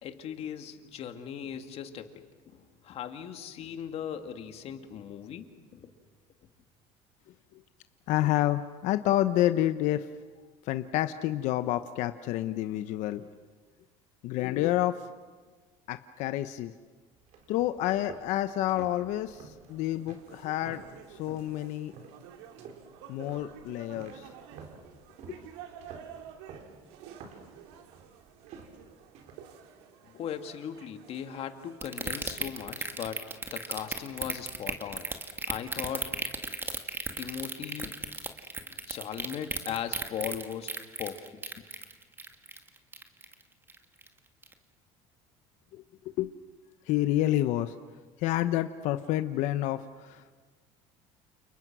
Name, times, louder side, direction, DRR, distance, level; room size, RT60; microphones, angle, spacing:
voice 1, 0.0-5.9 30.1-35.1 35.5-36.1 36.6-36.8 37.1-38.0 38.7-40.7 41.0-41.4, left 8 dB, 50° left, 7 dB, 2.3 m, -38 dB
voice 2, 8.1-10.1 10.6-13.3 14.2-15.0 15.9-16.7 17.5-20.8 21.1-21.9 23.1-24.3 25.3-25.4 45.7-46.3 46.9-47.7 48.2-50.4, left 14 dB, 65° left, 10 dB, 0.9 m, -29 dB
sound 1, 17.2-21.5 21.9-22.3 22.6-29.3, right 5 dB, 60° right, 4.5 m, -50 dB
sound 2, 19.7-32.4, right 8 dB, 90° right, 2.6 m, -51 dB
sound 3, 31.8-43.4 43.7-44.1 44.4-44.5, right 3 dB, 15° right, 2.1 m, -34 dB
30.0 x 29.5 x 6.2 m, 1.4 s
cardioid pair, 125°, 13 cm